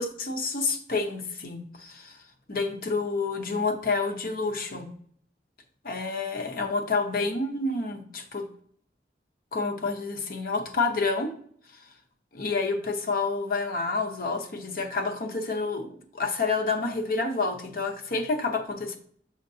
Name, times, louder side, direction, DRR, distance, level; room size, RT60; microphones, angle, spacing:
voice 1, 0.0-2.2 2.5-4.9 5.8-8.5 9.5-11.3 12.3-19.0, left 3 dB, 55° left, 5 dB, 0.8 m, -29 dB
6.5 x 5.6 x 2.7 m, 0.62 s
head